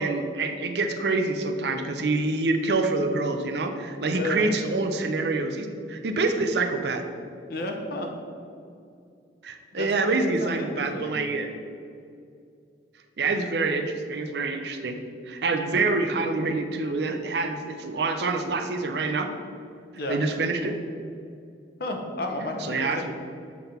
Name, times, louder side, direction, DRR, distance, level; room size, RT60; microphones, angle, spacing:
voice 1, 0.0-7.0 9.4-11.5 13.2-15.0 15.3-19.3 20.1-20.7 22.6-23.1, right 3 dB, 65° right, 6 dB, 0.6 m, -26 dB
voice 2, 4.1-4.5 7.5-8.1 9.8-9.9 10.4-11.2 20.0-20.2 21.8-23.1, left 2 dB, 55° left, 3 dB, 0.9 m, -32 dB
7.7 x 3.6 x 5.7 m, 2.4 s
head